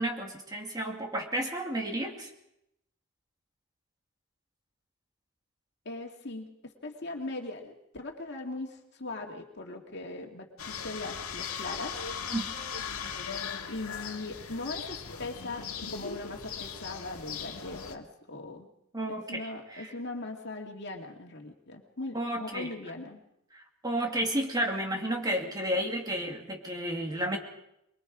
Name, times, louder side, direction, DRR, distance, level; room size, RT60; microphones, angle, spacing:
voice 1, 0.0-2.3 12.3-12.5 18.9-19.9 22.1-22.7 23.5-27.4, right 1 dB, 20° right, 1 dB, 2.4 m, -32 dB
voice 2, 5.9-11.9 13.4-18.7 19.1-23.2, left 2 dB, 50° left, 2 dB, 2.3 m, -40 dB
sound 1, 10.6-18.0, left 6 dB, 90° left, 1.8 m, -38 dB
23.5 x 23.0 x 5.0 m, 0.80 s
head